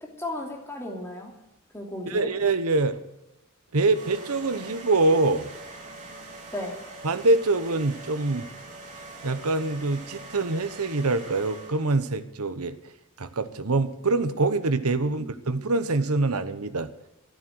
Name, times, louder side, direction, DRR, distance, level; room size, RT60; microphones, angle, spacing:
voice 1, 0.2-1.3 1.7-2.3 6.5-6.8 15.1-15.6, left 1 dB, 10° left, 0 dB, 2.9 m, -35 dB
voice 2, 2.1-3.0 3.7-5.5 7.0-8.5 9.2-12.8 13.2-16.9, right 2 dB, 75° right, 10 dB, 1.1 m, -24 dB
sound 1, 3.9-12.0, right 2 dB, 35° right, 3.6 m, -43 dB
14.0 x 11.5 x 6.3 m, 0.90 s
head